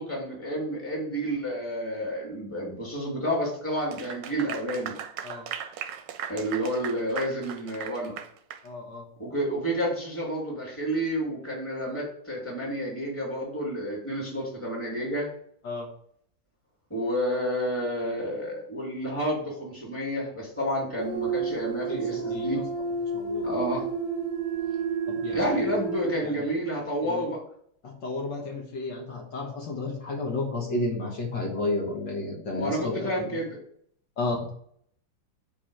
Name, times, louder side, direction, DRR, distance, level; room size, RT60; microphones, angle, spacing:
voice 1, 0.0-5.0 6.3-8.2 9.2-15.3 16.9-22.6 23.4-23.9 25.3-27.4 32.5-33.6, equal, 5° left, -3 dB, 2.5 m, -30 dB
Clapping / Applause, 3.8-8.7, right 8 dB, 75° right, 1.3 m, -38 dB
voice 2, 8.6-9.0 15.6-15.9 21.9-22.6 23.1-23.5 25.1-25.4 26.2-26.5 27.0-27.3 27.8-33.1 34.2-34.5, left 2 dB, 65° left, -1 dB, 2.0 m, -32 dB
sound 1, 21.0-26.2, right 4 dB, 30° right, 0.7 m, -30 dB
5.5 x 4.5 x 6.3 m, 0.64 s
omnidirectional pair, 2.1 m